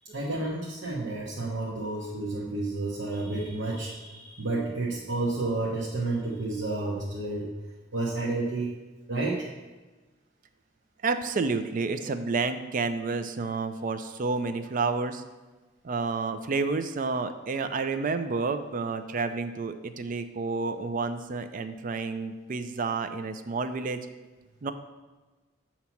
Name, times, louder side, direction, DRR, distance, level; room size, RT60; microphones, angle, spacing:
voice 1, 0.0-7.5 7.9-8.7 9.1-9.5, right 2 dB, 75° right, -5 dB, 1.0 m, -31 dB
voice 2, 11.0-15.2 15.8-24.0 24.6-24.7, right 4 dB, 45° right, 9 dB, 0.4 m, -30 dB
8.2 x 2.9 x 5.8 m, 1.2 s
head